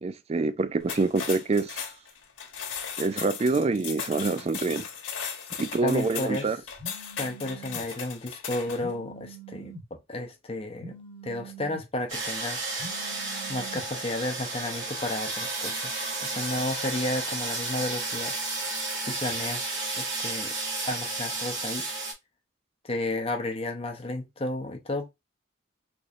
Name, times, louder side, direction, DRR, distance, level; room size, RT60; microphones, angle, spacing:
voice 1, 0.0-1.8 3.0-4.9 5.6-6.6, right 3 dB, 30° right, 0.3 m, -26 dB
sound 1, 0.8-8.9, left 7 dB, 70° left, 1.3 m, -37 dB
voice 2, 5.8-6.5 7.2-9.7 10.1-11.0 11.2-12.8 13.1-13.2 13.5-18.4 19.0-20.5 20.8-21.9 22.8-25.1, left 2 dB, 30° left, 0.7 m, -32 dB
Telephone, 6.8-7.8 8.8-9.8 10.8-11.8 12.8-13.8, right 3 dB, 10° left, 1.1 m, -44 dB
sound 2, 12.1-22.1, right 3 dB, 70° right, 1.7 m, -32 dB
4.3 x 3.0 x 2.4 m
head